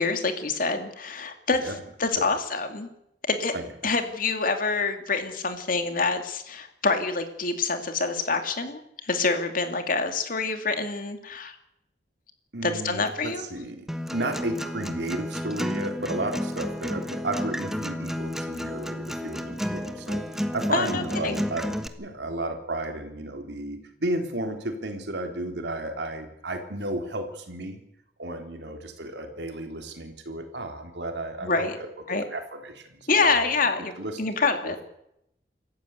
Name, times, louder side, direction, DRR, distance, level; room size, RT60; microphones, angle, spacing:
voice 1, 0.0-1.7 2.0-2.9 3.3-3.5 3.8-11.6 12.6-13.4 20.7-21.4 31.4-31.8 32.1-32.2 33.1-33.9 34.2-34.8, left 4 dB, 50° left, 6 dB, 2.7 m, -26 dB
voice 2, 3.5-3.9 12.5-27.8 28.2-33.5 34.0-34.8, right 1 dB, 75° right, 4 dB, 3.6 m, -33 dB
Acoustic guitar, 13.9-21.9, equal, ahead, 1.4 m, -31 dB
26.5 x 14.5 x 8.2 m, 0.80 s
head